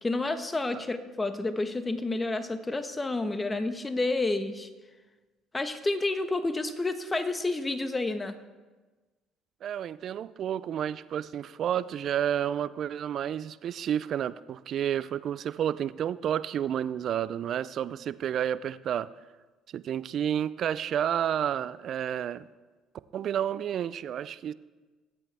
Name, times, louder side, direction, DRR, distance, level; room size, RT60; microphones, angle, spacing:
voice 1, 0.0-4.7 5.5-8.4, left 2 dB, 20° left, 9 dB, 1.3 m, -30 dB
voice 2, 9.6-19.1 19.7-22.5 23.1-24.5, right 9 dB, 55° right, 17 dB, 0.5 m, -30 dB
22.5 x 8.5 x 3.5 m, 1.3 s
hypercardioid pair, 60°, 0 cm